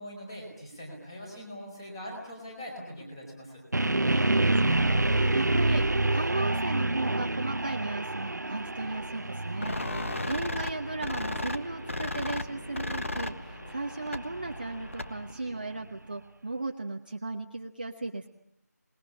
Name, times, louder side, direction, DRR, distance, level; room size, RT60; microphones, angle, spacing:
voice 1, 0.0-3.6, equal, 15° left, 1 dB, 5.0 m, -42 dB
sound 1, 3.7-15.7, right 2 dB, 90° right, 1.0 m, -29 dB
voice 2, 4.0-18.3, right 2 dB, 30° right, 4 dB, 1.1 m, -36 dB
sound 2, 9.6-15.3, left 2 dB, 50° left, 1.4 m, -36 dB
27.0 x 20.5 x 10.0 m, 0.74 s
figure-of-eight pair, 175°, 9 cm